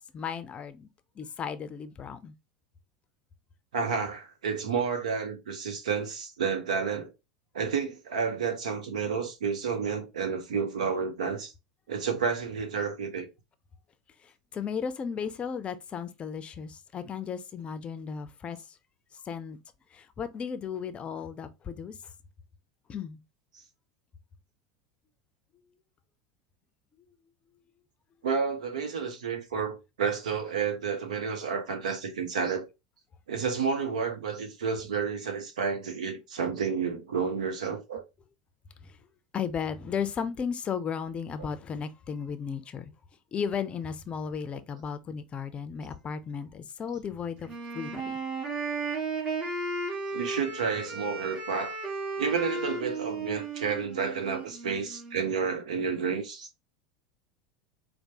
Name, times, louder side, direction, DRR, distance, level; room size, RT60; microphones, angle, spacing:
voice 1, 0.1-0.9 1.2-2.3 14.2-18.8 19.1-19.6 19.9-22.1 22.9-23.2 38.8-39.0 39.3-42.9 43.3-48.2, left 7 dB, 30° left, 0.5 m, -35 dB
voice 2, 3.7-7.1 7.5-11.5 11.9-13.3 28.2-32.7 33.3-38.0 50.1-51.7 52.2-56.5, right 6 dB, 75° right, 0.8 m, -30 dB
Wind instrument woodwind instrument, 47.4-55.3, right 3 dB, 35° right, 1.5 m, -35 dB
4.4 x 2.2 x 2.8 m
hypercardioid pair, 80°, 4 cm